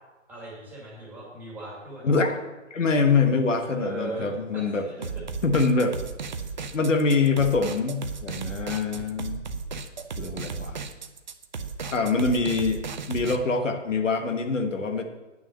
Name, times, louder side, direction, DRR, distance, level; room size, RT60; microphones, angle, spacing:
voice 1, 0.3-2.2 3.6-5.0, right 2 dB, 5° right, -5 dB, 2.1 m, -38 dB
voice 2, 2.0-2.4 2.7-4.8 5.4-6.0 6.7-9.4 10.2-10.8 11.9-12.8 13.1-15.0, left 4 dB, 75° left, 6 dB, 1.4 m, -24 dB
sound 1, 5.0-13.4, right 5 dB, 35° right, 0.6 m, -35 dB
9.4 x 6.2 x 7.4 m, 1.1 s
hypercardioid pair, 155°, 38 cm